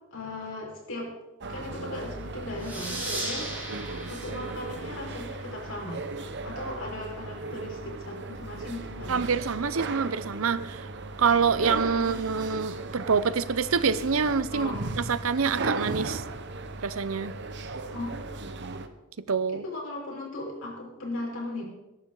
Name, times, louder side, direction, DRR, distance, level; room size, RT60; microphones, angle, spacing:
voice 1, 0.1-1.1 1.5-3.5 4.1-6.0 6.4-9.3 12.0-12.3 14.5-14.8 17.9-18.3 19.5-21.6, left 1 dB, 70° left, -2 dB, 5.0 m, -37 dB
sound 1, 1.4-18.9, right 3 dB, 60° right, 1.0 m, -37 dB
sound 2, 2.6-5.8, right 1 dB, 10° right, 4.8 m, -37 dB
voice 2, 9.1-10.9 11.2-16.2 16.8-17.4 19.3-19.6, right 5 dB, 75° right, 15 dB, 0.7 m, -26 dB
21.0 x 11.0 x 3.9 m, 1.0 s
head